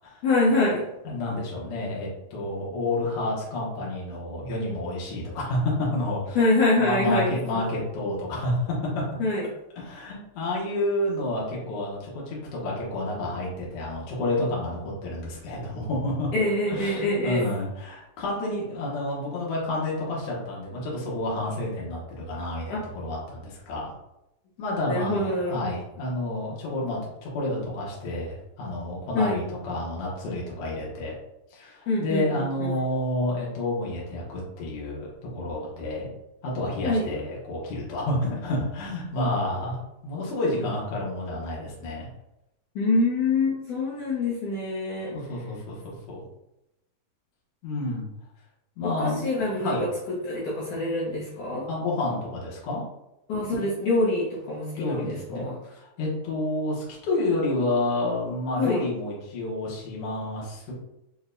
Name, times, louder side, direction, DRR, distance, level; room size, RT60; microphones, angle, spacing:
voice 1, 0.2-0.9 6.4-7.3 9.2-9.5 16.3-17.5 22.7-22.8 24.9-25.6 29.2-29.3 31.9-32.5 36.8-37.1 42.8-45.2 48.8-49.7 50.2-51.6 53.3-55.6 58.6-58.8, left 2 dB, 70° left, -7 dB, 1.9 m, -25 dB
voice 2, 1.0-6.4 6.8-8.7 9.8-16.3 16.7-23.9 24.6-31.1 31.5-36.1 36.4-42.1 45.1-46.2 47.6-48.1 48.8-49.3 49.6-49.8 51.7-52.8 54.8-60.7, left 2 dB, 90° left, -5 dB, 1.3 m, -29 dB
6.4 x 2.2 x 2.6 m, 0.88 s
omnidirectional pair, 4.2 m